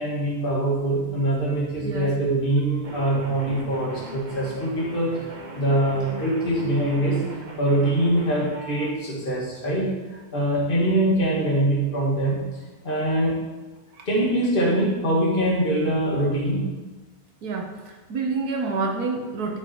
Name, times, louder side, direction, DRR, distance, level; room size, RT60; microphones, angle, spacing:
voice 1, 0.0-7.2 7.6-12.4 12.8-13.4 14.1-16.7, right 1 dB, 35° left, -4 dB, 2.4 m, -23 dB
sound 1, 2.8-8.9, right 3 dB, 35° right, 1.2 m, -39 dB
voice 2, 17.4-19.6, right 4 dB, 85° right, 1 dB, 1.6 m, -28 dB
12.5 x 6.7 x 4.6 m, 1.2 s
omnidirectional pair, 1.6 m